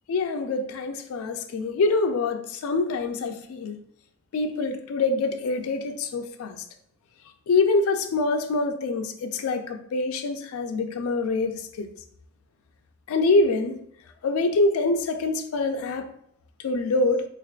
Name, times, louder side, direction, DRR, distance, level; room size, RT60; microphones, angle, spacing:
voice 1, 0.1-3.8 4.3-6.6 7.5-11.9 13.1-13.8 14.2-16.1 16.6-17.2, left 3 dB, 80° left, 6 dB, 0.3 m, -25 dB
3.6 x 3.4 x 2.3 m, 0.71 s
head